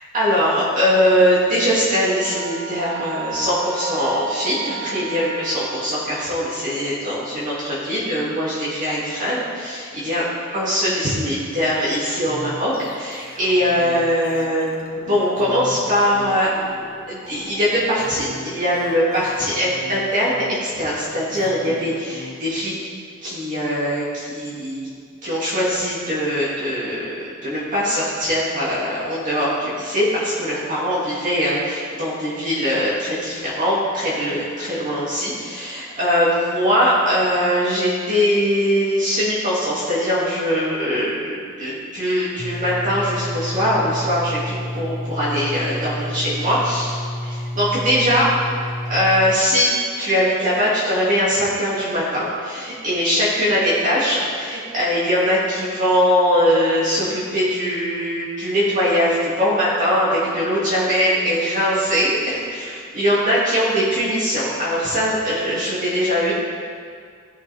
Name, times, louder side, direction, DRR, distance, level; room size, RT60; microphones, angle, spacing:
voice 1, 0.1-10.2 10.5-16.5 17.1-22.7 23.2-24.9 25.2-48.3 48.9-49.7 50.0-66.3, equal, 40° right, -8 dB, 2.3 m, -21 dB
sound 1, 2.2-6.6, right 6 dB, 80° right, 0.7 m, -33 dB
sound 2, 12.3-22.6, left 2 dB, 45° left, 1.3 m, -38 dB
sound 3, 42.4-49.4, equal, 15° left, 0.5 m, -29 dB
16.5 x 6.4 x 3.4 m, 2.1 s
head